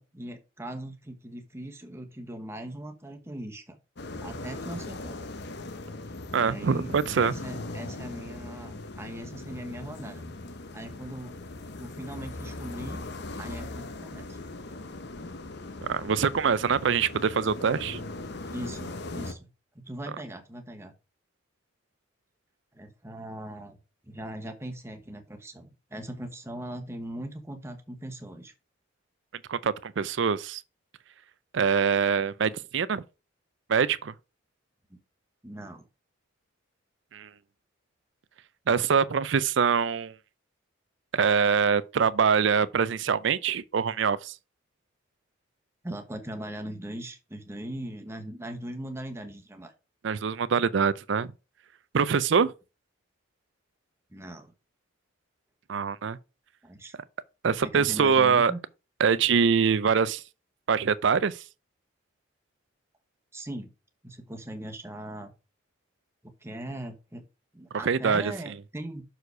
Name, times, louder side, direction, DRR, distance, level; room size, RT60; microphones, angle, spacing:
voice 1, 0.0-3.8 4.2-5.2 6.3-10.2 10.7-11.4 11.8-13.0 13.4-14.4 18.5-19.5 19.7-20.9 22.7-23.8 24.0-28.5 34.9-35.0 35.4-35.9 45.8-49.7 54.1-54.5 56.6-56.9 57.6-58.6 63.3-63.7 64.0-65.3 66.4-67.2 67.5-69.0, right 1 dB, 15° right, 1.1 m, -40 dB
sound 1, 4.0-19.3, left 2 dB, 55° left, 0.8 m, -39 dB
voice 2, 6.3-7.3 15.9-18.0 29.5-30.6 31.5-33.0 33.7-34.1 37.1-37.3 38.7-40.1 41.1-44.3 50.0-51.3 51.9-52.5 55.7-56.2 57.4-58.5 59.0-60.2 60.7-61.4 67.8-68.3, right 6 dB, 60° right, 0.4 m, -24 dB
6.4 x 4.7 x 4.7 m
head